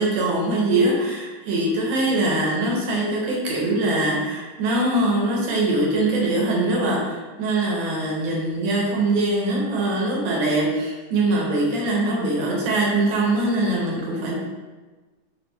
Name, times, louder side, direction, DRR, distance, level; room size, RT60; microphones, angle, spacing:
voice 1, 0.0-14.4, right 2 dB, 80° right, -3 dB, 1.5 m, -22 dB
4.2 x 2.4 x 2.2 m, 1.3 s
omnidirectional pair, 2.1 m